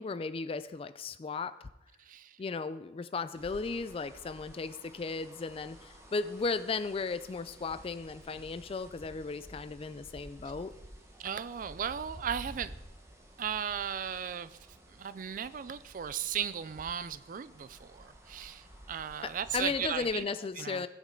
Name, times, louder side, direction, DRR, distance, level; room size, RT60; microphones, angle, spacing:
voice 1, 0.0-1.7 2.4-10.7 19.2-20.9, left 4 dB, 30° left, 13 dB, 0.3 m, -35 dB
voice 2, 2.1-2.4 11.2-12.7 13.4-14.6 15.0-20.3 20.6-20.8, right 8 dB, 45° right, 15 dB, 0.4 m, -36 dB
sound 1, 3.3-20.2, right 1 dB, 15° right, 1.0 m, -52 dB
15.5 x 5.3 x 3.8 m, 0.99 s
head